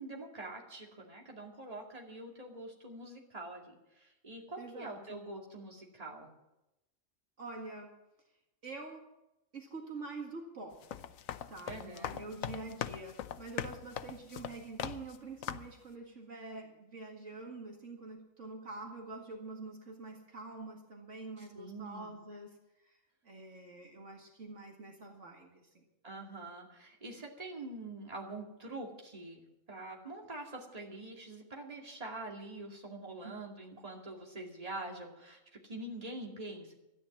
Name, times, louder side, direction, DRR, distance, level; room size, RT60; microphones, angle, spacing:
voice 1, 0.0-6.3 11.7-12.2 21.4-22.1 26.0-29.4 29.7-36.7, right 2 dB, 30° right, 0 dB, 2.5 m, -45 dB
voice 2, 4.6-5.2 7.4-7.9 8.6-9.1 9.5-11.0 11.5-22.6 22.8-23.0 23.2-25.8 33.2-33.4, right 3 dB, 60° right, 1 dB, 2.3 m, -46 dB
sound 1, 10.7-15.2 15.4-15.8, left 10 dB, 85° left, 1.1 m, -41 dB
13.5 x 11.0 x 7.2 m, 0.91 s
omnidirectional pair, 1.4 m